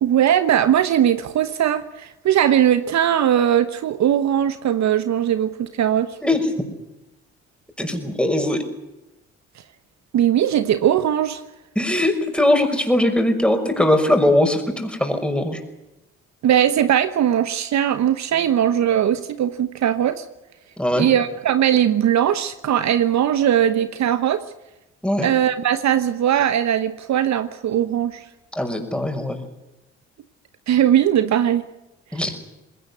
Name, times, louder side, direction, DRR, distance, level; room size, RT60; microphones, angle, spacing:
voice 1, 0.0-6.2 10.1-11.4 16.4-20.2 21.0-24.4 25.2-28.2 30.7-31.6, right 10 dB, 60° right, 12 dB, 1.1 m, -19 dB
voice 2, 7.8-8.7 11.8-15.6 20.8-21.1 25.0-25.3 28.5-29.4 32.1-32.3, left 1 dB, 5° left, 5 dB, 5.9 m, -20 dB
20.5 x 18.0 x 9.8 m, 0.97 s
hypercardioid pair, 55°, 31 cm